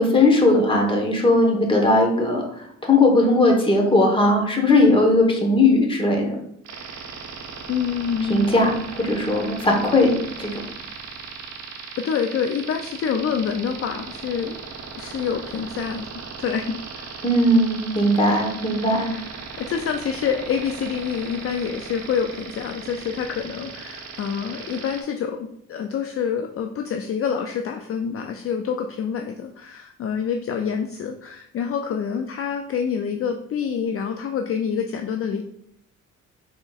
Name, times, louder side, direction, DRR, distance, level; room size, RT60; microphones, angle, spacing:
voice 1, 0.0-2.4 2.8-6.4 8.3-10.6 17.2-19.1, left 2 dB, 15° left, 1 dB, 1.2 m, -18 dB
sound 1, 6.6-25.0, right 5 dB, 60° right, 0.9 m, -37 dB
voice 2, 7.7-8.5 12.0-14.6 15.0-17.2 19.0-19.2 19.6-35.4, left 7 dB, 50° left, 5 dB, 0.4 m, -27 dB
5.0 x 3.9 x 2.4 m, 0.71 s
cardioid pair, 90°, 30 cm